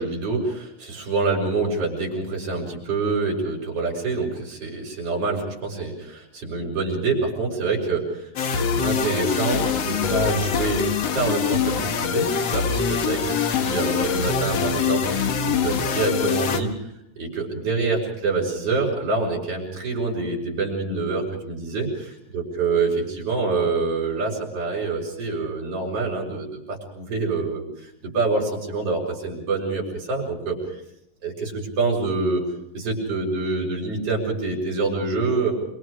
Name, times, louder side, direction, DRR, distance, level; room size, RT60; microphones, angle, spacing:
voice 1, 0.0-8.3 8.6-10.9 11.1-15.0 15.4-16.7 17.2-30.8 31.2-32.4 32.7-35.5, right 3 dB, 45° right, -2 dB, 7.2 m, -26 dB
sound 1, 8.4-16.6, left 6 dB, 55° left, 2.5 m, -24 dB
28.5 x 24.5 x 5.0 m, 0.76 s
omnidirectional pair, 3.9 m